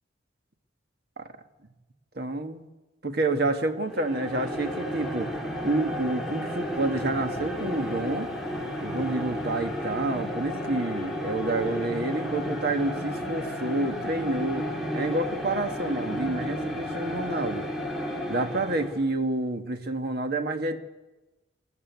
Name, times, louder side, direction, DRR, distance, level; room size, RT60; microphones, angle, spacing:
voice 1, 2.1-2.7 3.0-8.3 8.8-14.7 14.9-17.7 18.3-20.8, right 2 dB, 55° right, 7 dB, 1.5 m, -29 dB
sound 1, 3.8-19.1, equal, ahead, 2.5 m, -33 dB
20.5 x 14.5 x 9.4 m, 1.1 s
head